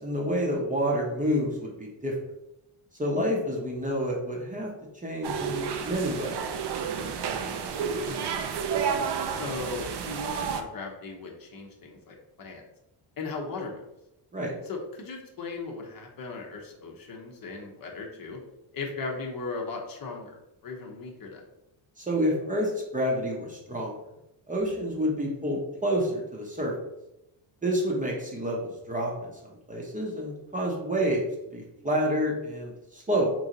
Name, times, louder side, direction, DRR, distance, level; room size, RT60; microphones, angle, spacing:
voice 1, 0.0-2.1 3.0-4.7 5.0-6.4 14.3-14.5 22.0-24.0 24.5-26.7 27.6-29.3 29.7-31.3 31.5-33.3, equal, 15° right, -2 dB, 0.7 m, -28 dB
sound 1, 5.2-10.6, right 6 dB, 60° right, 0.5 m, -31 dB
voice 2, 9.3-12.7 13.2-13.8 14.6-18.4 18.7-21.4, left 3 dB, 45° left, 1 dB, 0.8 m, -37 dB
3.1 x 2.7 x 3.8 m, 0.88 s
cardioid pair, 115°, 47 cm